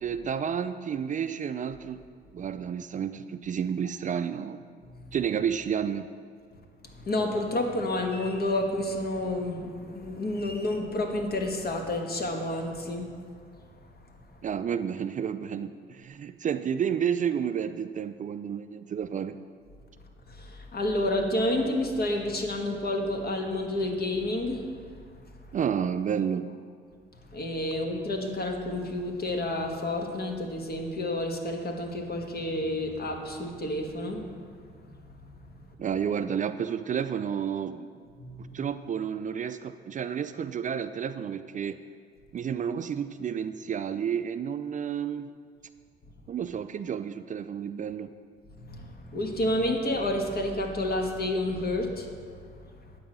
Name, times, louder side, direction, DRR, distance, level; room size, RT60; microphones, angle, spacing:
voice 1, 0.0-2.0 2.3-4.6 5.1-6.1 14.4-19.4 25.5-26.5 35.8-37.9 38.4-41.8 42.3-45.3 46.3-48.1, right 8 dB, 40° right, 11 dB, 0.4 m, -31 dB
voice 2, 6.9-13.1 20.3-24.7 27.3-34.3 38.2-38.5 48.6-52.2, left 1 dB, 50° left, 3 dB, 1.4 m, -30 dB
9.4 x 4.8 x 7.5 m, 2.1 s
cardioid pair, 90°, 20 cm